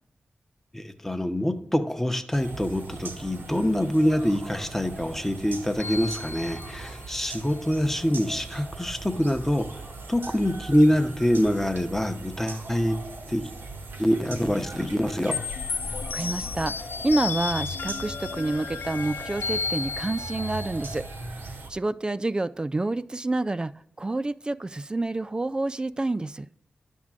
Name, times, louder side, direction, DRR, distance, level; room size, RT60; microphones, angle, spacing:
voice 1, 0.7-9.7 10.1-13.0 13.3-13.4 14.0-15.4, equal, 10° left, 7 dB, 0.8 m, -25 dB
sound 1, 2.3-21.7, right 3 dB, 90° right, 1.3 m, -40 dB
sound 2, 5.8-7.3 15.3-21.0, left 5 dB, 80° left, 0.4 m, -33 dB
voice 2, 16.1-21.1 21.4-26.5, right 2 dB, 25° right, 14 dB, 0.3 m, -28 dB
11.0 x 3.7 x 7.4 m, 0.75 s
wide cardioid pair, 85°, 3 cm